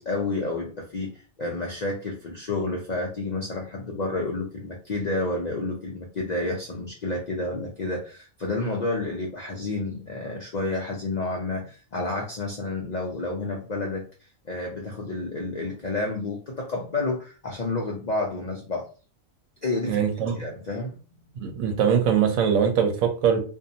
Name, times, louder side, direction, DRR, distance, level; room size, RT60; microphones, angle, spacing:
voice 1, 0.0-14.0 14.4-18.9 19.6-20.0 20.3-20.9, left 2 dB, 70° left, 0 dB, 0.4 m, -30 dB
voice 2, 19.9-20.3 21.4-23.4, right 7 dB, 90° right, 5 dB, 1.1 m, -22 dB
2.7 x 2.2 x 2.6 m, 0.36 s
omnidirectional pair, 1.4 m